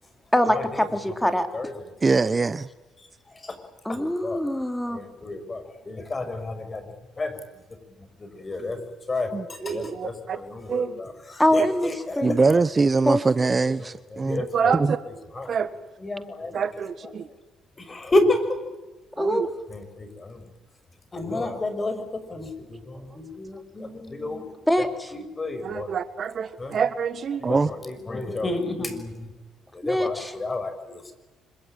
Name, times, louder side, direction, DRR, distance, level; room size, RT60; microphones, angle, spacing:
voice 1, 0.3-1.5 3.9-5.0 11.4-11.9 12.2-12.4 13.1-13.2 19.2-19.5 24.7-25.1 29.8-30.3, left 1 dB, 5° left, 7 dB, 3.5 m, -23 dB
voice 2, 1.2-1.7 3.4-3.5 3.9-4.4 4.9-6.8 7.2-7.4 8.2-8.8 9.1-12.6 13.4-13.6 14.1-14.8 15.4-15.5 16.0-16.6 17.8-18.6 19.7-20.4 21.1-22.0 22.3-24.5 25.1-25.9 26.6-26.7 27.5-29.3 29.7-31.2, left 2 dB, 30° left, 9 dB, 5.9 m, -30 dB
voice 3, 2.0-2.7 9.3-9.5 12.2-14.4 14.7-14.9 27.4-27.7, right 4 dB, 30° right, 15 dB, 0.8 m, -21 dB
voice 4, 9.6-10.4 10.7-11.0 11.6-11.7 14.4-15.0 15.5-15.7 16.5-17.3 19.2-19.5 25.6-27.5, right 7 dB, 55° right, 13 dB, 1.5 m, -27 dB
26.0 x 23.0 x 9.0 m, 1.1 s
supercardioid pair, 75°, 0 cm